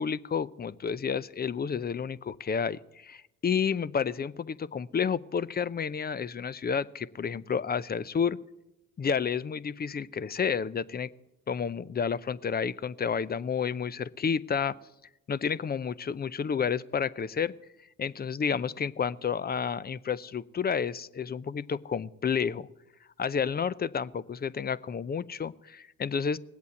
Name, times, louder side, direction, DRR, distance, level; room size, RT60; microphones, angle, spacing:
voice 1, 0.0-8.4 9.0-11.1 11.5-14.8 15.3-17.5 18.0-22.7 23.2-26.4, left 6 dB, 25° left, 18 dB, 0.5 m, -30 dB
18.5 x 8.2 x 8.3 m, 0.92 s
supercardioid pair, 70°, 38 cm